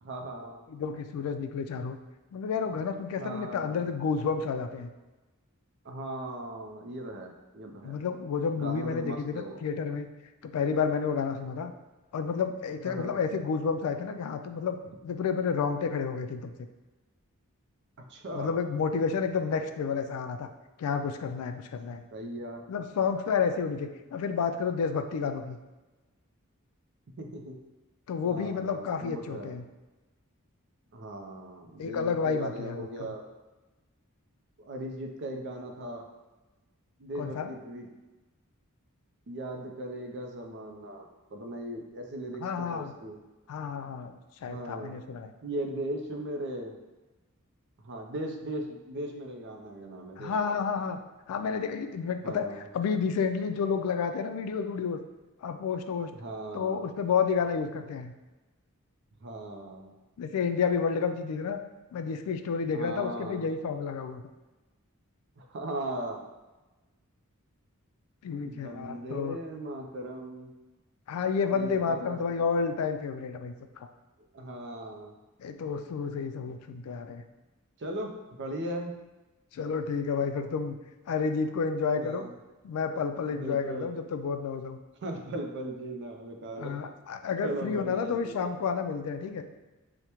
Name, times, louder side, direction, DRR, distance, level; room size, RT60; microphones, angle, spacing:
voice 1, 0.0-0.6 3.2-3.8 5.8-8.0 8.6-9.6 12.8-13.2 18.0-18.5 22.1-22.6 27.2-27.6 28.2-29.6 30.9-33.2 34.6-36.1 37.0-37.9 39.3-43.2 44.5-45.0 45.4-46.8 47.8-50.6 52.2-52.7 56.1-56.8 59.2-59.9 62.7-63.5 65.4-66.2 68.5-70.5 71.5-72.2 74.3-75.1 77.8-79.0 82.0-82.3 83.3-83.9 85.0-86.8 87.4-88.5, right 1 dB, 55° right, 3 dB, 0.5 m, -38 dB
voice 2, 0.7-2.0 2.3-4.9 7.8-10.1 10.4-11.7 12.1-14.8 15.0-16.5 18.3-20.5 20.8-22.0 22.7-25.6 28.1-29.6 31.8-33.1 37.2-37.5 42.4-42.9 43.5-45.3 50.2-51.0 51.3-52.5 52.7-55.0 55.4-56.1 56.5-58.1 60.2-61.6 61.9-64.2 68.2-69.4 71.1-73.9 75.4-77.2 79.5-80.8 81.1-82.3 82.6-84.8 86.6-89.4, left 5 dB, 80° left, 8 dB, 0.3 m, -30 dB
4.8 x 2.1 x 2.9 m, 1.1 s
head